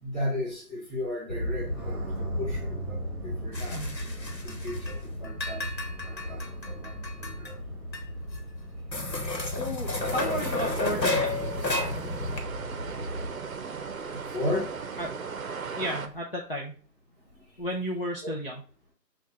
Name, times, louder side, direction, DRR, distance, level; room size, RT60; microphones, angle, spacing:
voice 1, 0.0-5.7 6.0-7.5 12.6-12.9 14.0-14.7 18.2-18.4, left 1 dB, ahead, -8 dB, 1.4 m, -35 dB
sound 1, 1.3-13.3, equal, 15° right, 1.0 m, -36 dB
sound 2, 3.5-5.0 5.2-7.5 7.9-8.0 8.3-8.4 8.9-12.4, left 2 dB, 85° left, 1.1 m, -32 dB
voice 2, 9.6-11.4 15.0-15.2 15.8-16.8 17.6-18.6, equal, 35° left, -1 dB, 0.5 m, -33 dB
sound 3, 10.0-16.1, right 5 dB, 55° right, 0.6 m, -37 dB
6.9 x 2.4 x 2.9 m, 0.39 s
figure-of-eight pair, 145°, 50 cm